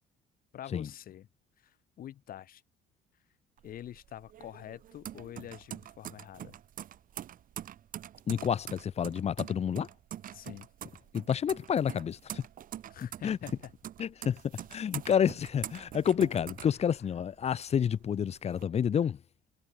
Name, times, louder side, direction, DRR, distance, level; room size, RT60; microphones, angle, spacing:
voice 1, 0.5-1.3 1.6-2.6 3.6-6.6 10.3-10.7 12.9-13.7 16.6-17.1, left 11 dB, 60° left, 2.3 m, -46 dB
sound 1, 3.6-17.4 17.8-18.6, right 11 dB, 55° right, 1.3 m, -44 dB
voice 2, 8.3-9.9 11.1-12.4 13.2-13.4 14.0-14.4 14.7-19.2, left 8 dB, 40° left, 0.9 m, -29 dB
cardioid pair, 110°, 17 cm